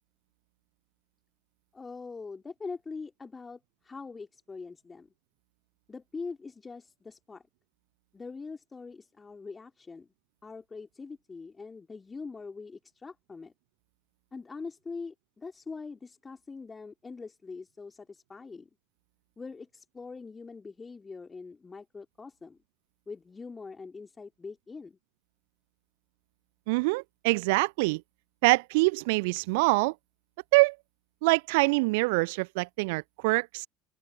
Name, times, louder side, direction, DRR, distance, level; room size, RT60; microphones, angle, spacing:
voice 1, 1.7-5.1 5.9-7.4 8.1-10.1 10.4-13.5 14.3-18.7 19.4-22.6 23.1-25.0, left 4 dB, 20° left, 3.4 m, -43 dB
voice 2, 26.7-28.0 28.4-29.9 30.5-30.8 31.2-33.7, right 26 dB, 60° right, 0.5 m, -25 dB
open air
figure-of-eight pair, 65°, 0 cm